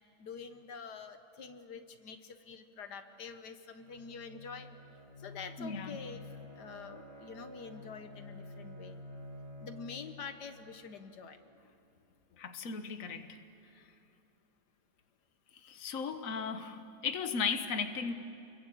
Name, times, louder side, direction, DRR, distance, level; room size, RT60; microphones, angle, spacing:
voice 1, 0.2-4.7 5.2-6.2 6.6-9.0 9.6-11.4, left 5 dB, 90° left, 8 dB, 1.9 m, -46 dB
Bowed string instrument, 3.7-11.6, left 2 dB, 70° right, 5.5 m, -50 dB
voice 2, 5.6-6.0 12.4-13.4 13.7-13.8 15.5-18.1, left 5 dB, 55° left, 8 dB, 1.7 m, -36 dB
30.0 x 22.5 x 8.6 m, 2.8 s
omnidirectional pair, 1.7 m